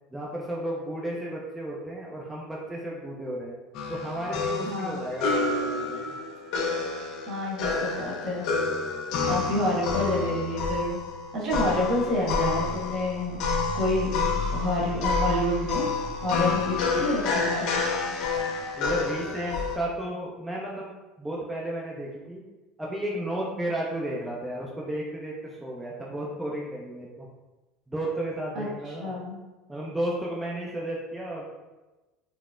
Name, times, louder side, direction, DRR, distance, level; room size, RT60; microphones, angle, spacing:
voice 1, 0.1-3.6 3.9-6.1 18.8-22.4 22.8-27.3 27.9-29.2 29.7-31.5, right 1 dB, 10° right, -4 dB, 0.4 m, -33 dB
sound 1, 3.7-19.8, left 4 dB, 65° left, 0.5 m, -29 dB
voice 2, 4.6-5.1 7.3-8.5 9.3-11.0 11.3-13.4 13.7-14.1 14.5-15.8 16.2-17.7 28.5-29.4, left 1 dB, 50° right, -4 dB, 1.3 m, -28 dB
3.9 x 2.0 x 2.4 m, 1.1 s
supercardioid pair, 105°, 0 cm